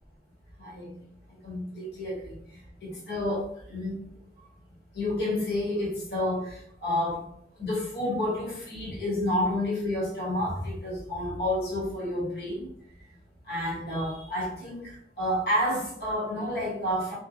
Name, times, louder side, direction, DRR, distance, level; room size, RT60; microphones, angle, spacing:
voice 1, 0.6-0.9 1.4-4.0 4.4-4.5 4.9-12.7 13.5-17.1, left 1 dB, 65° left, -5 dB, 1.0 m, -30 dB
2.8 x 2.1 x 2.5 m, 0.69 s
head